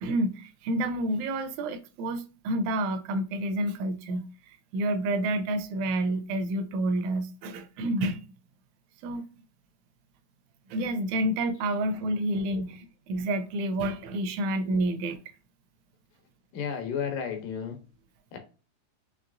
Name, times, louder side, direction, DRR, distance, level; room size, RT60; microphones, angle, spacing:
voice 1, 0.0-4.3 4.7-8.2 9.0-9.2 10.7-15.2, right 1 dB, 80° right, 1.7 m, -29 dB
voice 2, 16.5-17.8 18.3-18.4, left 7 dB, 85° left, 2.6 m, -32 dB
5.7 x 3.1 x 2.5 m
omnidirectional pair, 3.7 m